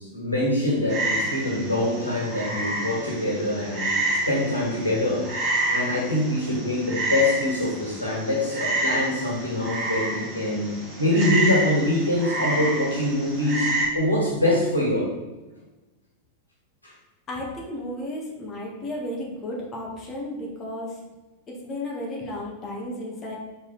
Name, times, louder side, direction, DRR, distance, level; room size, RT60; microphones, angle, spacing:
voice 1, 0.1-4.0 4.3-5.3 5.7-13.7 13.9-15.1 16.8-16.9, left 1 dB, 85° left, -4 dB, 2.0 m, -24 dB
Frog, 0.9-13.9, right 2 dB, 40° right, 2.2 m, -29 dB
voice 2, 17.3-21.0 21.6-23.4, left 1 dB, 25° left, -3 dB, 1.7 m, -33 dB
6.4 x 4.8 x 4.0 m, 1.1 s
figure-of-eight pair, 90°, 0 cm